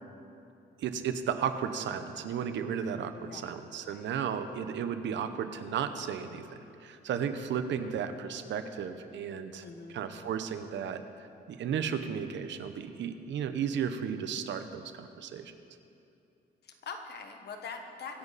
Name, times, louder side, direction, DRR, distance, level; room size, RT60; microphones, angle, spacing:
voice 1, 0.8-9.6 9.9-11.0 11.5-15.5, right 7 dB, 80° right, 9 dB, 1.0 m, -34 dB
voice 2, 3.2-3.5 3.8-4.5 7.7-7.8 9.6-10.1 16.6-18.2, left 5 dB, 65° left, 5 dB, 1.5 m, -44 dB
23.5 x 10.5 x 4.2 m, 2.6 s
cardioid pair, 130°, 19 cm